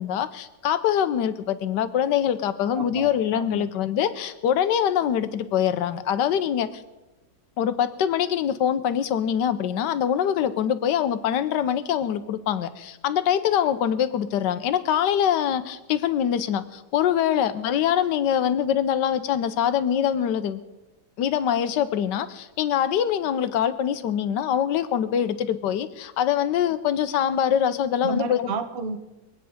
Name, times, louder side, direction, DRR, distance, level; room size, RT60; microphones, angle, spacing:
voice 1, 0.0-6.8 7.6-20.6 21.2-28.5, left 9 dB, 75° left, 12 dB, 1.4 m, -24 dB
voice 2, 2.7-3.1 3.4-3.7 28.0-29.0, right 4 dB, 40° right, 8 dB, 1.0 m, -31 dB
23.0 x 9.1 x 5.0 m, 1.1 s
omnidirectional pair, 1.9 m